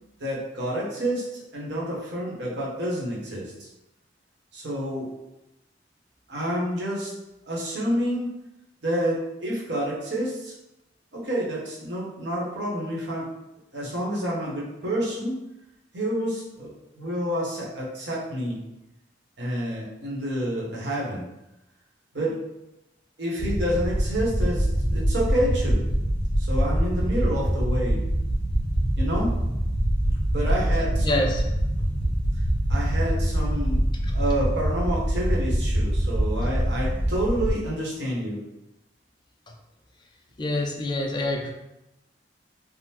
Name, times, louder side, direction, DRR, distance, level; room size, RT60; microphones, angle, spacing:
voice 1, 0.2-3.7 4.5-5.1 6.3-7.1 7.5-8.3 8.8-10.5 11.1-13.3 13.7-15.4 15.9-16.7 16.9-18.6 19.4-21.2 22.1-22.4 23.2-25.8 26.4-28.0 28.9-29.3 30.3-31.3 32.7-33.8 34.1-38.4, equal, 75° right, -5 dB, 0.9 m, -28 dB
sound 1, 23.4-37.5, equal, 50° left, 1.1 m, -24 dB
voice 2, 31.0-31.4 34.0-34.2 40.4-41.5, left 1 dB, 25° left, 1 dB, 0.4 m, -26 dB
3.5 x 2.0 x 2.8 m, 0.94 s
head